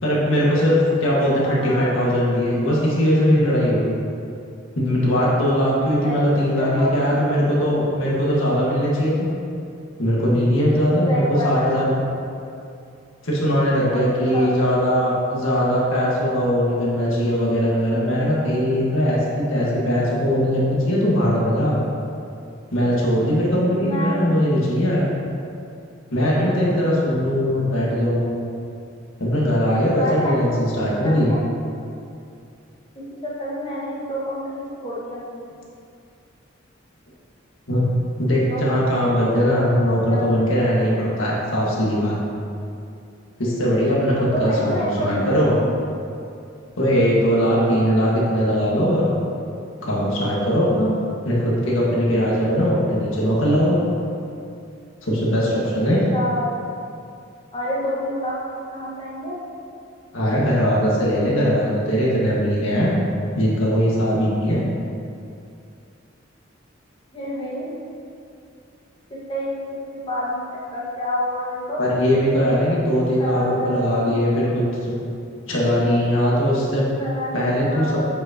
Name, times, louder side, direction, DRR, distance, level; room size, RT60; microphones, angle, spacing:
voice 1, 0.0-4.0 4.7-9.3 10.0-12.1 13.2-21.8 22.7-25.1 26.1-28.3 29.2-31.3 37.7-37.9 38.2-42.2 43.4-45.5 46.8-49.1 49.8-50.9 51.2-53.8 55.0-56.0 60.1-63.0 63.4-64.6 71.8-74.9 75.5-76.9 77.3-78.1, equal, 85° left, -5 dB, 1.7 m, -20 dB
voice 2, 1.2-2.0 6.0-7.2 10.9-11.7 13.7-14.6 14.9-15.0 23.8-24.3 30.0-30.6 31.0-31.4 32.9-35.4 38.5-39.0 39.6-40.3 44.3-45.7 56.1-56.6 57.5-59.4 67.1-67.7 69.1-71.8 73.2-74.1 77.0-78.1, equal, 30° left, -6 dB, 1.6 m, -28 dB
8.0 x 6.3 x 2.9 m, 2.5 s
head